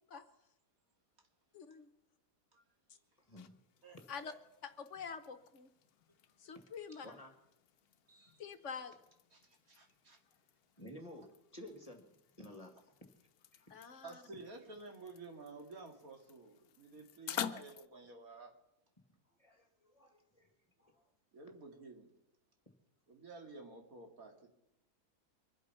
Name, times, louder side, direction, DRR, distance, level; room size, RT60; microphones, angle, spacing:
voice 1, 1.5-1.9 4.1-4.3 4.6-5.7 6.4-7.1 8.4-8.9 13.7-14.1, left 6 dB, 55° left, 9 dB, 1.3 m, -46 dB
sound 1, 3.0-17.9, left 9 dB, 75° left, 1.2 m, -50 dB
voice 2, 3.3-3.6 7.0-7.3 10.8-12.0 12.4-13.0 13.5-13.6 19.4-21.1, left 1 dB, 25° left, 4 dB, 1.9 m, -53 dB
voice 3, 8.1-8.4 9.3-10.2 14.0-18.5 21.3-22.2 23.1-24.5, right 3 dB, 65° right, 2 dB, 2.7 m, -52 dB
24.5 x 8.3 x 5.6 m, 0.84 s
omnidirectional pair, 1.6 m